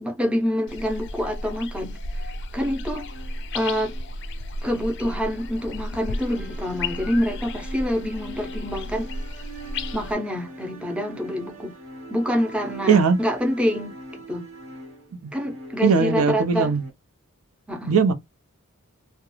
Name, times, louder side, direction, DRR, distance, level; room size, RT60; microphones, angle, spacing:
voice 1, 0.0-3.1 3.5-4.0 4.6-9.1 9.9-11.7 12.1-14.0 14.3-14.5 15.3-16.7 17.7-17.9, equal, 5° right, 0.5 m, -26 dB
sound 1, 0.7-10.1, left 2 dB, 55° left, 0.4 m, -33 dB
sound 2, 3.0-16.9, right 1 dB, 65° right, 0.9 m, -43 dB
voice 2, 12.9-13.2 15.8-16.8 17.9-18.1, right 5 dB, 90° right, 0.5 m, -19 dB
2.4 x 2.2 x 2.9 m
head